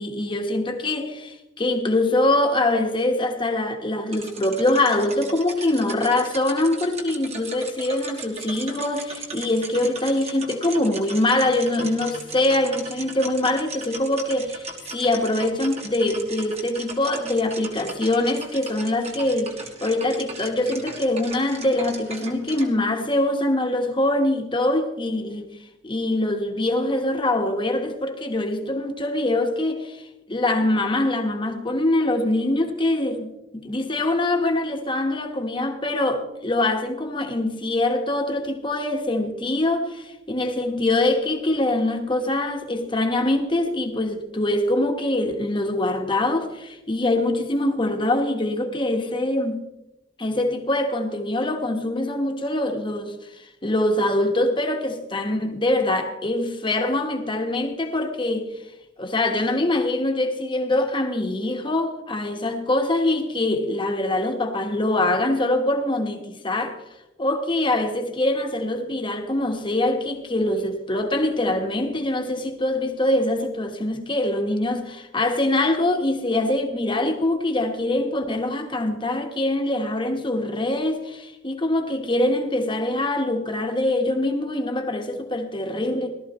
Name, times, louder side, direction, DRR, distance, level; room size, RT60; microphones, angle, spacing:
voice 1, 0.0-14.7 14.9-25.5 25.8-49.7 50.2-58.5 59.0-66.8 67.2-86.2, left 1 dB, 25° left, 1.4 m, -24 dB
sound 1, 4.1-22.7, right 3 dB, 35° right, 1.7 m, -38 dB
18.0 x 13.0 x 3.1 m
head